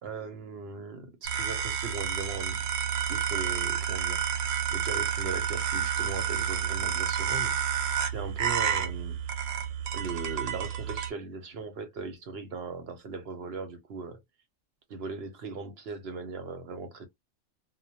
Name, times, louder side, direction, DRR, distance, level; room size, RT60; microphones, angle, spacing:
voice 1, 0.0-2.6 3.1-4.2 4.7-7.5 8.1-9.2 9.9-14.2 14.9-17.1, right 4 dB, 60° right, 0.8 m, -38 dB
sound 1, 1.2-11.1, right 8 dB, 85° right, 1.0 m, -30 dB
2.2 x 2.1 x 2.7 m
omnidirectional pair, 1.3 m